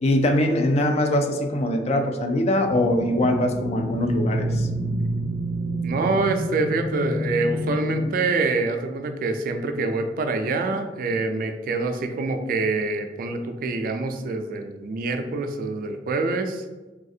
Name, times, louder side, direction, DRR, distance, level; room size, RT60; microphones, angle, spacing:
voice 1, 0.0-4.7, left 1 dB, 35° left, 5 dB, 0.3 m, -22 dB
sound 1, 2.6-8.1, right 1 dB, 75° left, 1.3 m, -28 dB
voice 2, 5.8-16.6, right 3 dB, 50° right, 6 dB, 0.3 m, -26 dB
3.3 x 2.4 x 2.7 m, 1.2 s
head